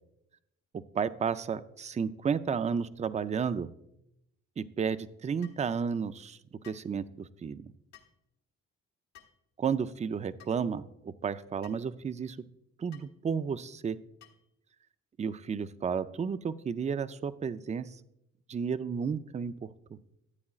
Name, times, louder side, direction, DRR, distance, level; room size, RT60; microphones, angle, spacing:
voice 1, 0.9-3.7 4.6-6.4 6.7-7.7 9.6-12.4 12.8-14.0 15.2-17.9 18.5-19.7, right 6 dB, 25° right, 14 dB, 0.4 m, -32 dB
sound 1, 5.4-5.7 6.6-6.9 7.9-8.2 9.1-9.4 10.4-10.6 11.6-11.9 12.9-13.1 14.2-14.5, left 11 dB, 65° left, 1.4 m, -55 dB
14.0 x 8.5 x 2.4 m, 0.81 s
cardioid pair, 90°, 30 cm